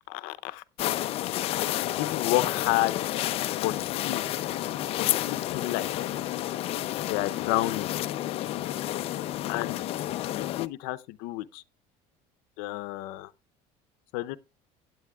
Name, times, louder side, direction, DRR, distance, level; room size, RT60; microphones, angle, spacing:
voice 1, 0.1-0.6 2.0-3.2 3.6-4.3 5.0-5.9 7.0-7.9 9.5-9.9 10.3-11.6 12.6-13.3 14.1-14.4, left 17 dB, 80° left, 0.7 m, -30 dB
sound 1, 0.8-10.7, left 14 dB, 40° left, 0.5 m, -30 dB
16.0 x 9.3 x 2.4 m
cardioid pair, 170°, 15 cm